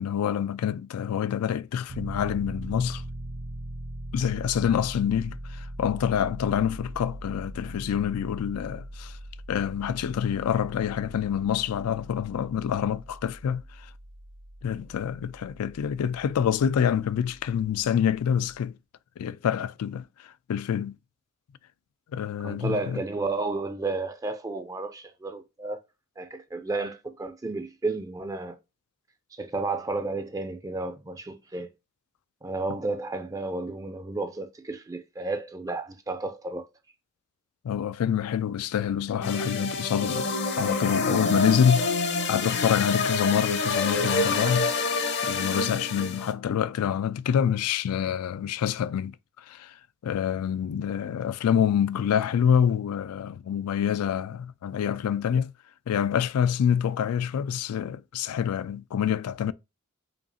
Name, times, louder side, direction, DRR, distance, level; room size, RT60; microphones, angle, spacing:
voice 1, 0.0-3.0 4.1-9.2 9.5-13.6 14.6-18.8 19.2-21.0 22.1-23.0 37.6-41.9 42.3-44.7 45.2-49.8 50.0-55.5 55.9-59.5, left 8 dB, 85° left, 0.3 m, -26 dB
Piano, 1.9-18.6, right 1 dB, 65° right, 1.1 m, -41 dB
voice 2, 22.4-25.8 26.2-28.6 29.3-31.7 32.4-36.7, right 3 dB, 15° right, 0.4 m, -32 dB
sound 1, 39.2-46.3, left 3 dB, 50° left, 0.7 m, -27 dB
5.2 x 2.4 x 2.6 m
head